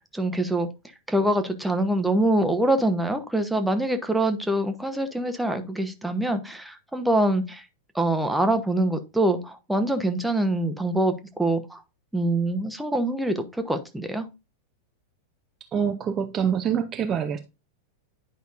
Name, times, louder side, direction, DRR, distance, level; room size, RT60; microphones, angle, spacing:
voice 1, 0.1-0.7 1.1-7.6 7.9-11.8 12.1-14.3, right 1 dB, 5° right, 0.9 m, -24 dB
voice 2, 15.7-17.4, right 7 dB, 25° right, 0.6 m, -25 dB
10.0 x 5.2 x 2.6 m
figure-of-eight pair, 90°, 0 cm